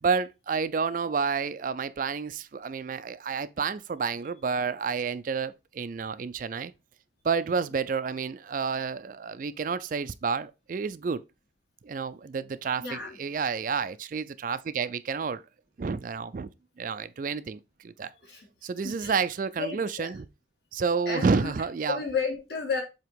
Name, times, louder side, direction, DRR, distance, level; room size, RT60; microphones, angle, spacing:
voice 1, 0.0-6.7 7.2-11.2 11.8-15.4 15.8-16.5 16.8-18.1 18.6-20.2 20.7-22.0, right 5 dB, 45° right, 0.3 m, -30 dB
voice 2, 12.8-13.2 18.2-18.5 18.8-19.1 19.6-20.1 21.0-21.5 21.9-22.8, left 5 dB, 60° left, 2.9 m, -32 dB
7.6 x 2.9 x 5.0 m
head